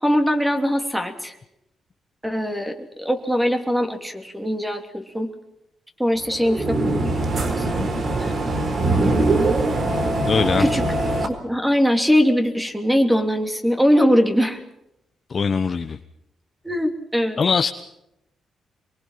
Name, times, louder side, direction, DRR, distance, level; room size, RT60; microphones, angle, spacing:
voice 1, 0.0-1.4 2.2-5.3 6.0-8.3 10.6-10.8 11.4-14.6 16.6-17.4, equal, 5° right, 6 dB, 3.1 m, -22 dB
sound 1, 6.2-11.3, right 2 dB, 45° right, 4.1 m, -22 dB
voice 2, 10.2-10.7 15.3-16.0 17.4-17.7, left 5 dB, 35° left, 8 dB, 1.0 m, -21 dB
25.0 x 23.5 x 5.8 m, 0.82 s
cardioid pair, 130°, 0 cm